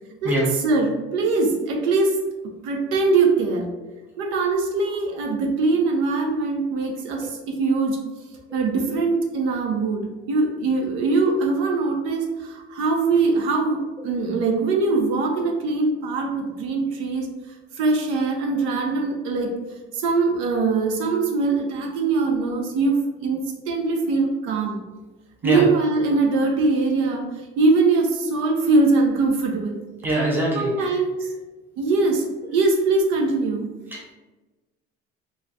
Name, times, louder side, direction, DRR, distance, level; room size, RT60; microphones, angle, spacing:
voice 1, 0.6-3.7 4.2-8.0 8.5-17.3 17.7-19.6 19.9-24.8 25.4-29.8 30.5-31.3 31.8-33.7, right 3 dB, 80° right, 3 dB, 0.5 m, -22 dB
voice 2, 30.0-31.0 33.9-34.1, right 1 dB, 10° right, -4 dB, 0.8 m, -24 dB
2.3 x 2.2 x 3.8 m, 1.2 s
cardioid pair, 140°, 20 cm